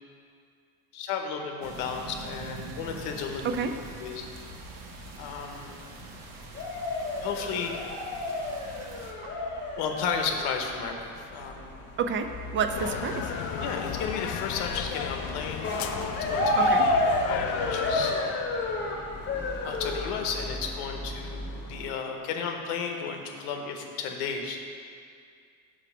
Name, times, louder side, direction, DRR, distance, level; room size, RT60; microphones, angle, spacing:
voice 1, 0.9-3.6 4.0-4.3 5.2-5.7 7.2-7.7 9.8-11.7 13.6-16.7 17.2-18.5 19.6-24.6, left 6 dB, 80° left, 3 dB, 0.9 m, -33 dB
sound 1, 1.6-9.1, right 3 dB, 60° right, 0.9 m, -44 dB
sound 2, 2.8-21.9, left 1 dB, 30° left, 0.9 m, -32 dB
voice 2, 12.0-13.3 16.6-16.9, right 6 dB, 30° right, 7 dB, 0.4 m, -29 dB
sound 3, 12.7-18.1, left 8 dB, 65° left, 0.5 m, -34 dB
5.0 x 4.7 x 5.8 m, 2.2 s
cardioid pair, 120°, 39 cm